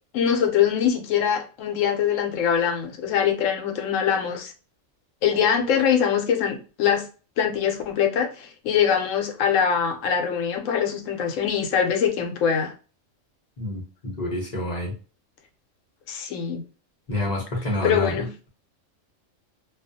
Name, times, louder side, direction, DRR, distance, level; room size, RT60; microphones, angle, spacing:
voice 1, 0.1-4.5 5.2-7.1 7.4-12.7 16.1-16.6 17.8-18.3, left 8 dB, 75° left, 0.9 m, -23 dB
voice 2, 13.6-14.9 17.1-18.5, left 1 dB, 40° left, 0.8 m, -28 dB
2.3 x 2.3 x 2.6 m
omnidirectional pair, 1.4 m